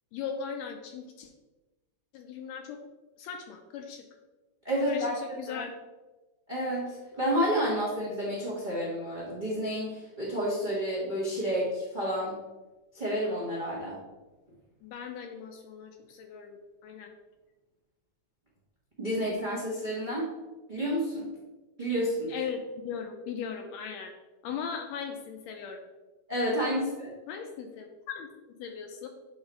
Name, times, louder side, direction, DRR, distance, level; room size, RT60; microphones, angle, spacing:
voice 1, 0.1-1.3 2.1-2.8 3.2-4.0 4.8-5.7 14.8-17.1 22.3-24.1 24.4-25.8 26.7-26.8 27.3-29.1, left 7 dB, 80° left, 5 dB, 1.6 m, -38 dB
voice 2, 4.6-5.2 5.5-5.6 6.5-12.4 12.9-14.0 19.0-20.3 20.7-21.3 21.8-22.3 26.3-27.1, equal, 80° right, -6 dB, 0.4 m, -30 dB
8.1 x 3.4 x 3.9 m, 1.1 s
omnidirectional pair, 3.4 m